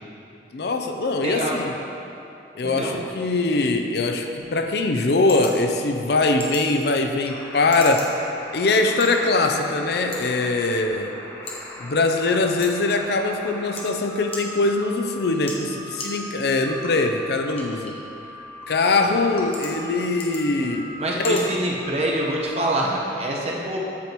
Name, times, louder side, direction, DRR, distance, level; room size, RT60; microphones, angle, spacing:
voice 1, 0.5-1.7 2.5-8.1 8.5-11.1 11.8-18.0 18.7-21.4, left 3 dB, 60° left, 5 dB, 0.5 m, -22 dB
voice 2, 1.2-1.5 2.6-2.9 21.0-23.8, right 1 dB, 35° right, -3 dB, 1.0 m, -25 dB
sound 1, 4.4-22.4, left 2 dB, 30° left, 1.1 m, -42 dB
sound 2, 7.3-22.9, left 1 dB, 15° left, 0.7 m, -40 dB
8.3 x 7.3 x 3.0 m, 2.9 s
head